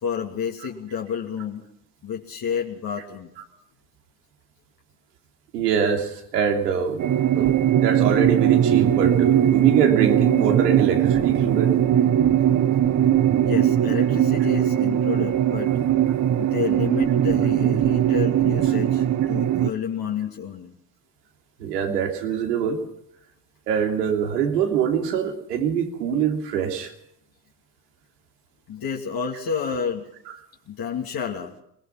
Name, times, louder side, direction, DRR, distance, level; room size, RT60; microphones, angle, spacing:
voice 1, 0.0-1.6 2.0-3.3 12.5-12.6 13.4-15.7 16.4-20.8 28.7-30.0 30.7-31.5, left 7 dB, 50° left, 0 dB, 2.7 m, -30 dB
voice 2, 5.5-7.0 7.4-7.5 7.8-11.7 21.6-22.8 23.7-26.9, right 7 dB, 90° right, 3 dB, 3.1 m, -24 dB
sound 1, 7.0-19.7, right 11 dB, 40° right, 1.0 m, -20 dB
23.5 x 20.5 x 6.0 m, 0.73 s
hypercardioid pair, 65°, 46 cm